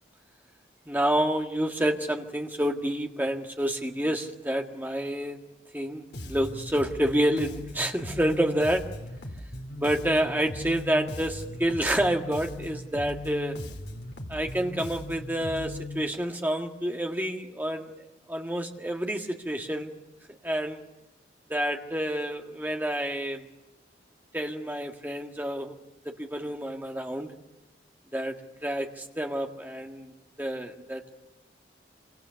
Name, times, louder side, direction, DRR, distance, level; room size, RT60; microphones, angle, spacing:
voice 1, 0.9-5.4 5.7-8.8 9.8-13.6 14.3-17.9 18.3-20.0 20.4-20.8 21.5-23.4 24.3-25.8 26.2-27.3 28.1-28.4 28.6-30.1 30.4-31.1, right 1 dB, 10° right, 3 dB, 1.7 m, -28 dB
Bass guitar, 6.1-16.0, left 1 dB, 65° left, 2.6 m, -39 dB
27.0 x 24.5 x 7.0 m, 1.0 s
head